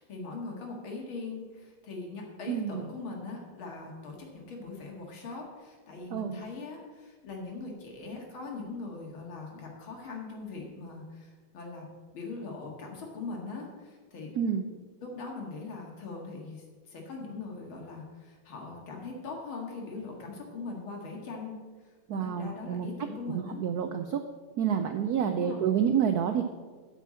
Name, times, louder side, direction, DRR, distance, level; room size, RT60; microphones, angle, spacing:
voice 1, 0.0-11.9 12.1-14.3 15.0-21.6 22.1-23.6 25.2-25.8, left 3 dB, 70° left, 0 dB, 2.7 m, -41 dB
voice 2, 2.5-2.8 6.1-6.4 14.4-14.7 22.1-22.9 23.3-24.2 24.6-26.5, right 8 dB, 90° right, 7 dB, 0.8 m, -28 dB
9.1 x 5.9 x 7.5 m, 1.4 s
omnidirectional pair, 2.3 m